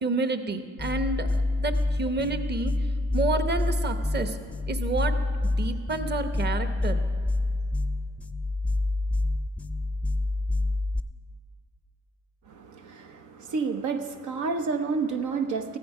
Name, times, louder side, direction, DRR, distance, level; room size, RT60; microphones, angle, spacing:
voice 1, 0.0-2.7 3.1-4.4 4.7-7.0, right 3 dB, 35° right, 8 dB, 1.0 m, -29 dB
sound 1, 0.8-11.0, left 2 dB, 5° left, 0.5 m, -27 dB
voice 2, 12.5-15.8, right 4 dB, 75° right, 6 dB, 0.9 m, -30 dB
15.0 x 13.5 x 4.8 m, 2.1 s
cardioid pair, 90°, 30 cm